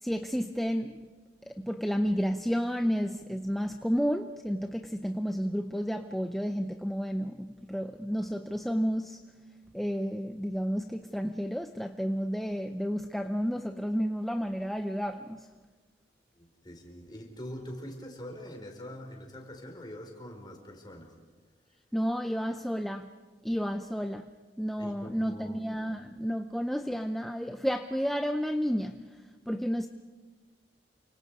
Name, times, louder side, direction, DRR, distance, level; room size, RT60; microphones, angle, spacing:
voice 1, 0.0-1.0 1.5-9.2 9.7-15.5 21.9-23.1 23.4-24.3 24.6-29.2 29.5-29.9, equal, ahead, 0.6 m, -31 dB
voice 2, 16.3-21.1 24.8-25.6, equal, 25° left, 4.6 m, -44 dB
29.5 x 25.5 x 4.9 m
head